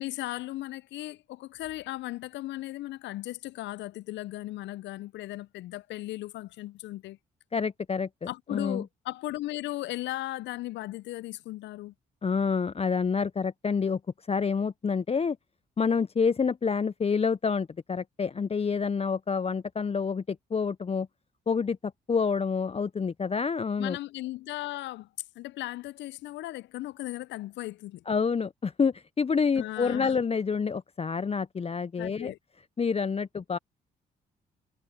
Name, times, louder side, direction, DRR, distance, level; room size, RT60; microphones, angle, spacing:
voice 1, 0.0-7.2 8.3-11.9 23.8-25.1 25.4-28.0 29.6-30.2 32.0-32.4, left 16 dB, 65° left, 0.8 m, -37 dB
voice 2, 7.5-8.8 12.2-15.4 15.8-21.1 21.5-24.0 28.1-32.3 32.8-33.6, left 5 dB, 30° left, 0.8 m, -28 dB
hypercardioid pair, 45°, 20 cm